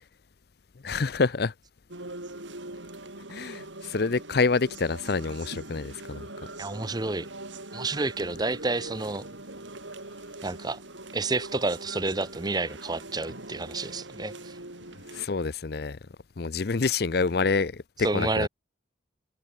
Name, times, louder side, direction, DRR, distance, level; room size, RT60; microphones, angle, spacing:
voice 1, 0.8-1.5 3.3-6.3 15.1-16.0 16.4-17.8 18.1-18.5, left 4 dB, 55° left, 0.6 m, -27 dB
sound 1, 1.9-15.3, right 2 dB, 80° right, 6.6 m, -42 dB
voice 2, 6.6-7.3 7.7-9.2 10.4-10.8 11.1-14.6 18.0-18.5, right 2 dB, 20° right, 0.8 m, -30 dB
head